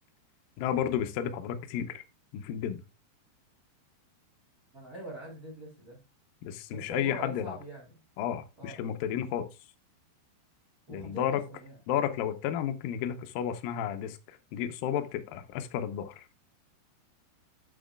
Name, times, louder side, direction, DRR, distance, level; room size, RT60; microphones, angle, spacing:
voice 1, 0.6-2.0 2.3-2.8 6.4-7.6 8.2-9.5 10.9-11.4 11.9-16.3, left 9 dB, 80° left, 2.1 m, -32 dB
voice 2, 4.7-6.0 6.7-7.9 8.6-8.8 10.9-11.8, right 2 dB, 25° right, 2.8 m, -43 dB
8.8 x 7.3 x 2.4 m
omnidirectional pair, 5.1 m